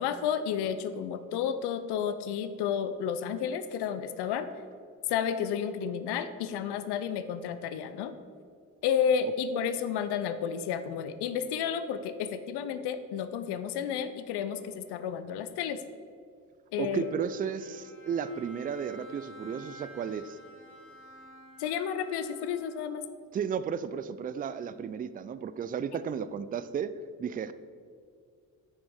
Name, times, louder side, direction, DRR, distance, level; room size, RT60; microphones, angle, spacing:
voice 1, 0.0-4.5 5.1-8.1 8.8-15.8 16.7-17.1 21.6-23.0, left 8 dB, 65° left, 11 dB, 0.6 m, -31 dB
voice 2, 16.8-20.4 23.3-26.9 27.2-27.5, right 7 dB, 20° right, 14 dB, 0.3 m, -33 dB
Bowed string instrument, 16.9-23.3, equal, 30° left, 2.0 m, -52 dB
6.4 x 5.9 x 4.8 m, 2.2 s
hypercardioid pair, 50°, 43 cm